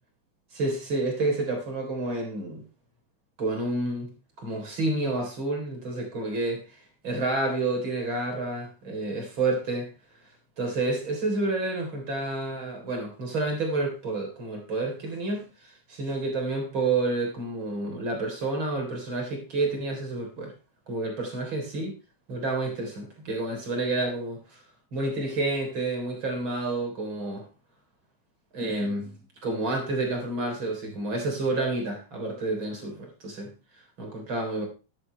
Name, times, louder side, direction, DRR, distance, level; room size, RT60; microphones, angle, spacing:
voice 1, 0.5-2.6 3.4-4.1 4.4-9.9 10.6-20.5 20.9-21.9 22.3-24.6 24.9-27.5 28.5-29.1 29.4-33.5 34.0-34.7, right 2 dB, 35° right, 2 dB, 4.2 m, -29 dB
14.0 x 11.5 x 3.3 m, 0.30 s
omnidirectional pair, 3.9 m